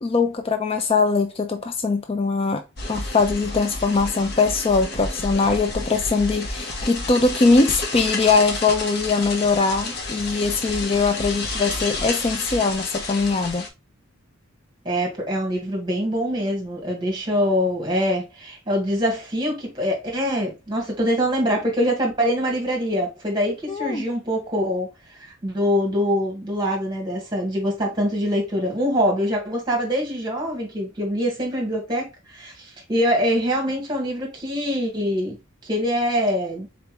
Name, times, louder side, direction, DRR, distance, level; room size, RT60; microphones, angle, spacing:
voice 1, 0.0-2.6 2.9-13.7 23.7-24.1, left 4 dB, 25° left, 0.4 m, -21 dB
sound 1, 2.8-13.7, left 2 dB, 50° left, 0.9 m, -30 dB
voice 2, 14.8-24.9 25.2-36.7, equal, 20° right, 1.5 m, -24 dB
3.9 x 3.4 x 3.0 m
head